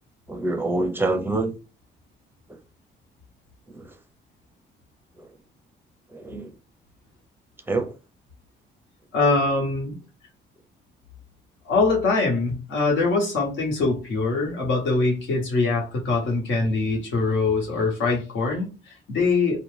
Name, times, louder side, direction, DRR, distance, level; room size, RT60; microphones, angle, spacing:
voice 1, 0.3-1.5 3.7-3.9 6.1-6.5 7.7-7.9, right 2 dB, 10° right, 0.5 m, -26 dB
voice 2, 9.1-10.0 11.7-19.6, left 3 dB, 75° left, 1.0 m, -23 dB
2.4 x 2.2 x 3.2 m
cardioid pair, 90°, 20 cm